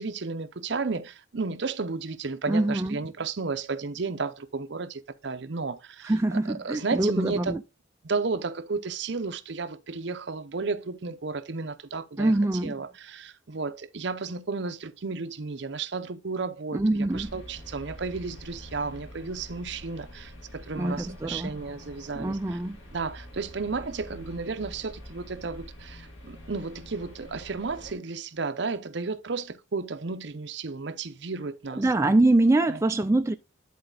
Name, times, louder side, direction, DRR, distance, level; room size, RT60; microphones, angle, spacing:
voice 1, 0.0-7.6 8.0-12.3 12.6-22.6 22.9-31.9 32.7-32.8, right 4 dB, 60° right, 0.7 m, -33 dB
voice 2, 2.5-3.0 6.0-7.6 12.2-12.8 16.7-17.3 20.8-21.6 22.1-22.8 31.8-33.3, right 2 dB, 15° right, 0.3 m, -24 dB
sound 1, 17.1-27.9, equal, 85° left, 2.7 m, -45 dB
10.5 x 4.2 x 3.8 m
head